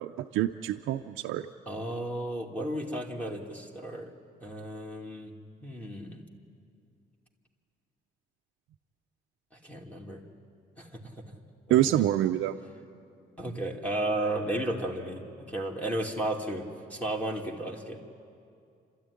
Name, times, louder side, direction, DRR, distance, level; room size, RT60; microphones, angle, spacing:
voice 1, 0.0-1.5 11.7-12.6, right 13 dB, 85° right, 3 dB, 0.6 m, -26 dB
voice 2, 1.7-4.1 4.4-5.3 5.6-6.2 9.6-10.2 10.8-11.3 11.8-12.0 13.4-15.2 15.5-18.0, right 1 dB, 5° left, -1 dB, 2.5 m, -34 dB
29.5 x 13.5 x 9.9 m, 2.5 s
cardioid pair, 90°, 20 cm